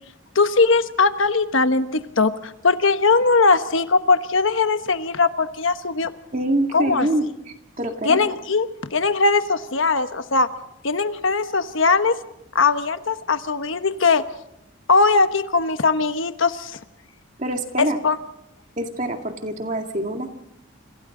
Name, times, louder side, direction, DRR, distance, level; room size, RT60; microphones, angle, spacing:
voice 1, 0.3-6.1 6.7-7.1 8.0-8.7 8.9-10.5 10.8-12.1 12.5-14.2 14.9-16.8 17.8-18.2, left 4 dB, 70° left, 10 dB, 1.2 m, -20 dB
voice 2, 6.3-8.2 17.4-18.0 18.8-20.3, right 1 dB, 35° right, 4 dB, 2.1 m, -25 dB
28.5 x 26.5 x 3.9 m, 0.80 s
head